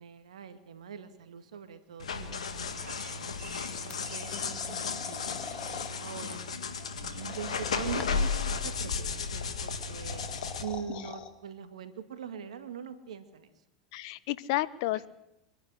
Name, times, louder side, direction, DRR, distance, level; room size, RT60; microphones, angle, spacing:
voice 1, 0.0-5.4 6.0-6.4 7.0-10.3 10.6-13.5, right 7 dB, 85° right, 9 dB, 2.1 m, -43 dB
sound 1, 2.0-10.6, left 5 dB, 90° left, 1.9 m, -34 dB
Bird vocalization bird call bird song, 2.6-5.0 5.3-5.9 6.2-6.7 7.1-7.3, right 5 dB, 35° right, 4.8 m, -52 dB
sound 2, 3.9-5.9 7.2-8.4 9.8-11.3, left 6 dB, 30° left, 2.6 m, -44 dB
voice 2, 13.9-15.1, left 17 dB, 65° left, 18 dB, 0.9 m, -32 dB
24.0 x 11.5 x 9.8 m, 0.86 s
hypercardioid pair, 100°, 3 cm